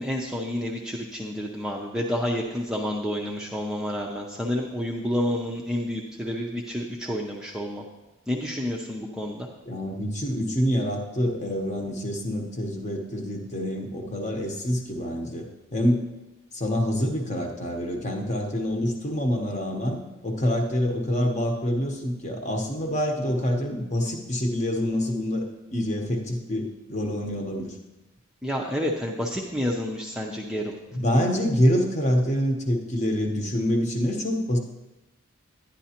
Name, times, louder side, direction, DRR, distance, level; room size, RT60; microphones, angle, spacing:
voice 1, 0.0-7.8 8.3-9.5 28.4-30.8, equal, 5° right, -2 dB, 0.5 m, -29 dB
voice 2, 9.7-15.5 15.7-16.0 16.5-27.8 30.9-34.6, equal, 30° left, 2 dB, 0.9 m, -26 dB
10.0 x 10.0 x 2.9 m, 1.0 s
head